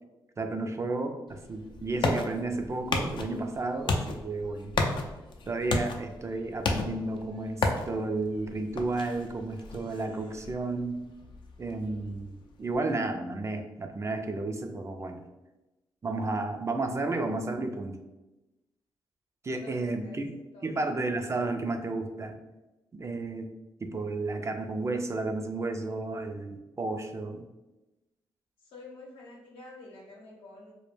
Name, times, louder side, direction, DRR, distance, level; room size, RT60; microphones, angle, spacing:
voice 1, 0.4-4.7 5.5-11.0 11.6-15.2 16.0-18.0 19.4-20.3 20.6-22.4 22.9-23.5 23.8-27.4, right 2 dB, 30° right, 5 dB, 0.4 m, -32 dB
sound 1, 1.3-12.8, left 3 dB, 60° left, 0.4 m, -34 dB
voice 2, 19.5-20.7 28.6-30.7, left 2 dB, 80° left, -3 dB, 0.7 m, -49 dB
2.1 x 2.1 x 3.1 m, 1.0 s
supercardioid pair, 50°, 9 cm